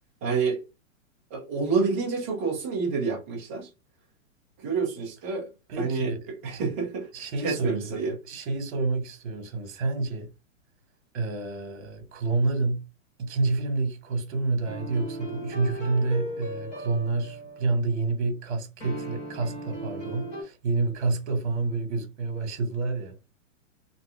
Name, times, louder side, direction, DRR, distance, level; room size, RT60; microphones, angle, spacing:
voice 1, 0.2-0.6 1.3-3.7 4.6-5.5 5.8-6.1 6.4-7.1 7.4-8.2, right 4 dB, 10° right, 0.4 m, -28 dB
voice 2, 5.7-6.2 6.5-6.6 7.1-8.0 8.2-10.3 11.1-12.8 13.2-23.2, right 3 dB, 55° right, 1.3 m, -28 dB
sound 1, 14.6-17.9 18.8-20.4, equal, 15° left, 1.0 m, -37 dB
2.8 x 2.4 x 3.2 m
hypercardioid pair, 170°, 39 cm